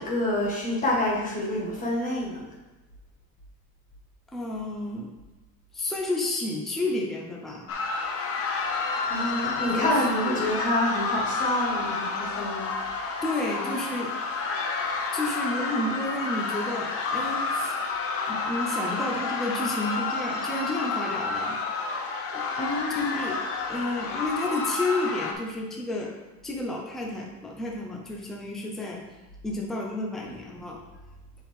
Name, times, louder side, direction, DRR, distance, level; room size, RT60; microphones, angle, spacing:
voice 1, 0.0-2.4 9.1-12.7 22.6-23.2, left 1 dB, 20° left, -4 dB, 1.8 m, -27 dB
voice 2, 4.3-5.1 5.7-7.7 9.7-9.9 10.2-10.5 13.2-14.1 15.1-17.8 18.3-21.6 22.3-22.5 22.9-23.4 23.7-26.1 26.4-29.0 29.4-30.8, left 2 dB, ahead, -1 dB, 0.5 m, -31 dB
sound 1, 7.7-25.3, left 4 dB, 35° left, 0.8 m, -30 dB
7.5 x 5.7 x 3.6 m, 1.1 s
cardioid pair, 170°, 39 cm